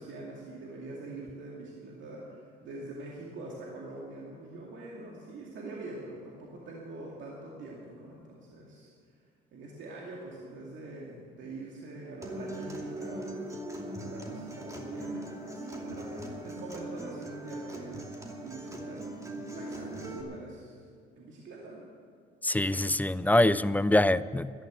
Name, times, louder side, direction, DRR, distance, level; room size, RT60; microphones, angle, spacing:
voice 1, 0.0-9.2 9.5-13.6 13.9-18.0 18.4-19.3 19.5-20.9 21.2-21.8, right 2 dB, 65° right, -3 dB, 2.4 m, -44 dB
Acoustic guitar, 12.2-20.2, right 1 dB, 15° right, 2.6 m, -40 dB
voice 2, 22.4-24.5, left 1 dB, 10° left, 17 dB, 0.3 m, -24 dB
13.0 x 10.5 x 8.1 m, 2.1 s
cardioid pair, 95°, 21 cm